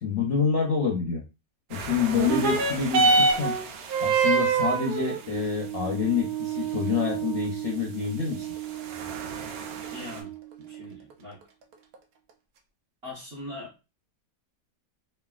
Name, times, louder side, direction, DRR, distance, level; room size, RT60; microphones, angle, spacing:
voice 1, 0.0-1.2 1.7-3.5 4.0-8.5, left 6 dB, 65° left, 0 dB, 0.7 m, -27 dB
sound 1, 1.7-10.2, right 5 dB, 90° right, 1.3 m, -41 dB
sound 2, 2.1-11.1 11.9-12.0, right 4 dB, 70° right, 1.1 m, -27 dB
voice 2, 9.9-10.3 10.6-11.4 13.0-13.7, left 2 dB, 45° right, -4 dB, 1.0 m, -41 dB
3.2 x 2.4 x 2.3 m, 0.28 s
omnidirectional pair, 1.9 m